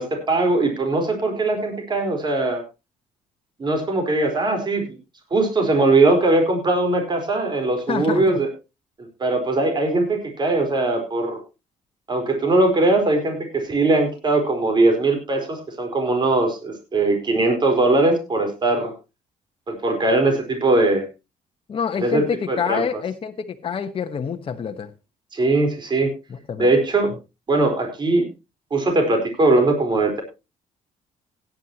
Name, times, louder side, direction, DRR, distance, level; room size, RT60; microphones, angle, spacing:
voice 1, 0.0-2.6 3.6-5.0 5.3-8.5 9.2-11.4 12.1-18.9 19.7-21.0 21.9-22.8 25.3-26.1 26.6-27.1 27.5-28.2 28.7-30.2, right 2 dB, 35° right, 4.5 m, -20 dB
voice 2, 7.9-8.4 21.7-24.9 26.3-26.7, left 7 dB, 40° left, 1.4 m, -27 dB
17.0 x 10.5 x 3.0 m
cardioid pair, 100°, 14 cm